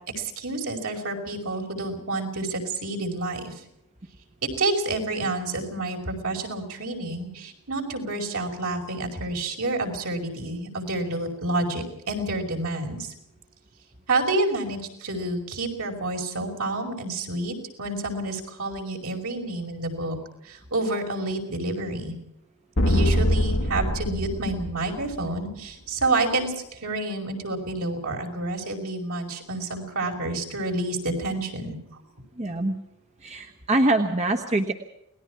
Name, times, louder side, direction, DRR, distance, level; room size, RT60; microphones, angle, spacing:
voice 1, 0.2-3.6 4.6-13.1 14.1-20.2 20.4-22.2 22.9-31.8, right 2 dB, 70° right, 2 dB, 5.3 m, -29 dB
sound 1, 22.8-25.4, equal, 60° left, 1.4 m, -24 dB
voice 2, 32.4-32.8 33.2-34.7, right 2 dB, 30° right, 4 dB, 1.3 m, -24 dB
29.0 x 20.0 x 4.8 m, 0.82 s
head